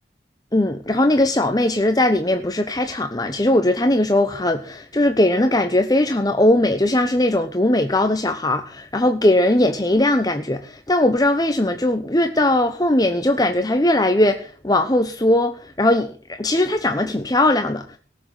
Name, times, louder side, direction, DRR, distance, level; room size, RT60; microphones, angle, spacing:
voice 1, 0.5-18.0, left 1 dB, 20° left, 7 dB, 1.0 m, -19 dB
18.5 x 7.4 x 7.9 m, 0.41 s
head